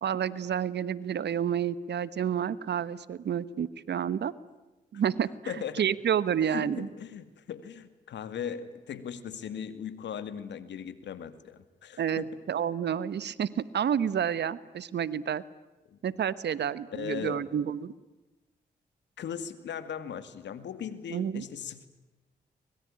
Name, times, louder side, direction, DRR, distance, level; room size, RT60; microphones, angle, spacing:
voice 1, 0.0-4.3 4.9-6.9 12.0-15.4 16.0-17.9 21.1-21.4, right 8 dB, 65° right, 17 dB, 1.2 m, -30 dB
voice 2, 5.5-5.8 6.4-12.3 15.9-16.0 16.9-17.4 19.2-21.9, left 8 dB, 75° left, 12 dB, 2.2 m, -38 dB
24.0 x 22.0 x 10.0 m, 1.1 s
supercardioid pair, 45°, 19 cm